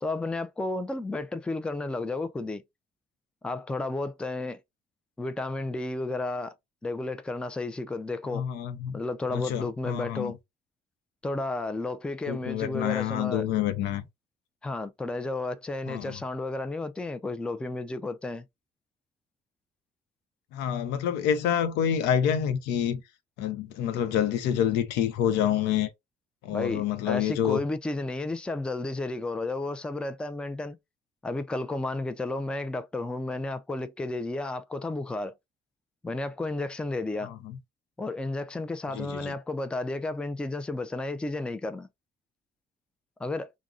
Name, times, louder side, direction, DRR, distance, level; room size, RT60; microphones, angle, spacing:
voice 1, 0.0-2.6 3.4-4.6 5.2-6.5 6.8-8.5 8.9-10.4 11.2-13.5 14.6-18.4 26.5-30.8 31.2-35.3 36.0-37.3 38.0-41.9 43.2-43.5, left 2 dB, 5° left, 0.3 m, -32 dB
voice 2, 8.3-9.0 9.3-10.3 12.3-14.0 15.9-16.2 20.5-23.0 23.4-25.9 26.4-27.6 37.2-37.6 38.9-39.3, left 9 dB, 90° left, 0.5 m, -27 dB
2.4 x 2.0 x 3.5 m
cardioid pair, 110°, 17 cm